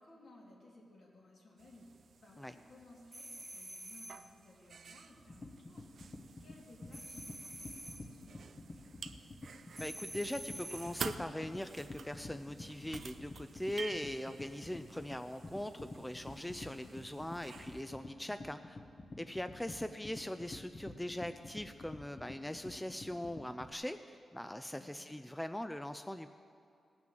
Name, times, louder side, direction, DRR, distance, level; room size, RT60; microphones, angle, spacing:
voice 1, 0.0-2.0 2.2-8.9 19.4-19.8 24.7-25.2, left 2 dB, 70° left, -3 dB, 3.0 m, -60 dB
sound 1, 1.6-17.8, right 6 dB, 70° right, 0.5 m, -51 dB
sound 2, 3.1-4.3 6.9-8.1 9.8-11.0, right 1 dB, 15° right, 0.9 m, -48 dB
sound 3, 5.1-23.7, left 2 dB, 35° left, 1.0 m, -49 dB
voice 2, 9.8-18.8 19.2-26.3, left 1 dB, 5° left, 9 dB, 0.4 m, -41 dB
17.5 x 6.0 x 7.4 m, 2.5 s
wide cardioid pair, 100°, 0 cm